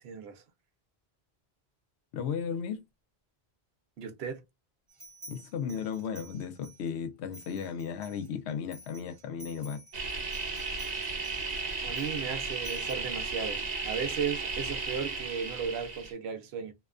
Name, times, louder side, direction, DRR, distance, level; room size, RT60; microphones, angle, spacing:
voice 1, 0.0-0.4 4.0-4.4 11.8-16.7, right 6 dB, 75° right, 0.9 m, -35 dB
voice 2, 2.1-2.8 5.3-9.8, left 7 dB, 90° left, 0.9 m, -35 dB
sound 1, 4.9-6.9 7.3-13.0, right 1 dB, 20° right, 1.0 m, -52 dB
sound 2, 9.9-16.1, right 4 dB, 45° right, 0.7 m, -35 dB
2.7 x 2.2 x 2.3 m
omnidirectional pair, 1.1 m